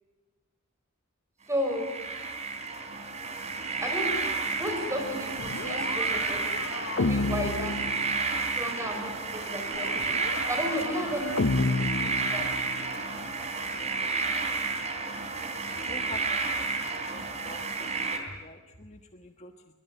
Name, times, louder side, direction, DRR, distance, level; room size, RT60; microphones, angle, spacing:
voice 1, 1.5-1.9 3.8-4.1 4.5-6.4 6.9-7.8 8.5-10.2 10.5-12.5, equal, 15° right, 4 dB, 5.2 m, -33 dB
sound 1, 1.6-18.2, right 4 dB, 30° right, 3.6 m, -31 dB
sound 2, 5.4-8.6 9.7-13.0, left 3 dB, 65° left, 0.9 m, -31 dB
voice 2, 15.9-16.4 17.4-17.6 18.1-19.5, left 2 dB, 30° left, 5 dB, 1.4 m, -44 dB
24.0 x 23.5 x 9.5 m, 1.3 s
head